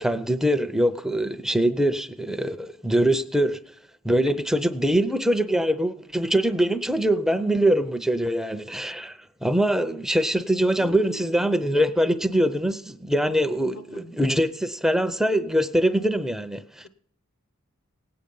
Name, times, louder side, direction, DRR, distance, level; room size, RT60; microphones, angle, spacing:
voice 1, 0.0-3.6 4.0-16.9, right 1 dB, ahead, 0.5 m, -23 dB
voice 2, 10.8-11.7 13.7-14.1, right 1 dB, 75° left, 1.1 m, -43 dB
18.5 x 8.7 x 5.4 m
head